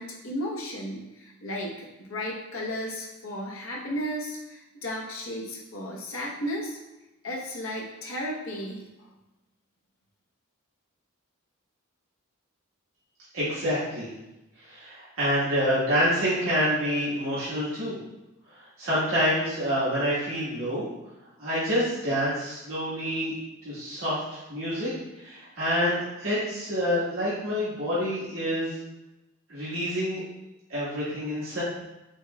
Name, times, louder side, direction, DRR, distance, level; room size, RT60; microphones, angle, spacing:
voice 1, 0.0-6.8 7.2-8.8, equal, 75° left, -3 dB, 0.9 m, -34 dB
voice 2, 13.3-14.1 14.6-18.0 18.5-20.8 21.4-23.3 23.6-24.9 25.2-28.7 29.5-30.2 30.7-31.6, equal, 80° right, -11 dB, 1.5 m, -27 dB
5.1 x 3.7 x 2.3 m, 0.97 s
head